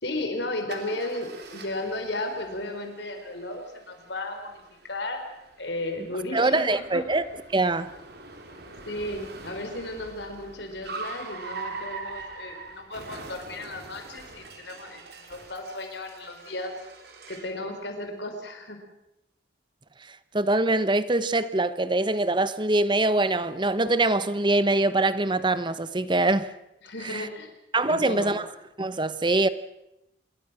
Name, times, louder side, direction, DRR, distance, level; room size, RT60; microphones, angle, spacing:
voice 1, 0.0-5.3 5.6-7.0 8.9-16.7 17.3-18.8 26.8-27.5 27.8-28.3, left 1 dB, 65° left, 4.7 m, -34 dB
Car, 0.7-17.6, right 3 dB, 55° right, 3.5 m, -43 dB
voice 2, 6.3-7.2 7.5-7.9 20.3-26.5 27.0-27.3 27.7-28.5 28.8-29.5, right 2 dB, 25° right, 0.9 m, -23 dB
27.0 x 21.5 x 6.3 m
head